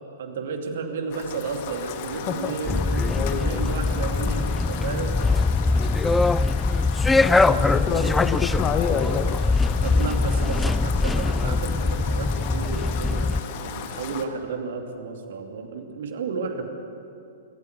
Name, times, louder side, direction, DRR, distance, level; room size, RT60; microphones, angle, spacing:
voice 1, 0.0-5.2 7.3-8.0 9.8-16.7, right 5 dB, 55° right, 4 dB, 2.6 m, -32 dB
Rain, 1.1-14.2, left 8 dB, 45° left, 1.6 m, -36 dB
voice 2, 2.3-3.7 5.7-6.2 7.6-9.4, left 7 dB, 25° left, 9 dB, 1.1 m, -28 dB
sound 1, 2.6-13.4, left 3 dB, 5° left, 0.5 m, -22 dB
26.5 x 14.5 x 8.2 m, 2.6 s
figure-of-eight pair, 105°, 0 cm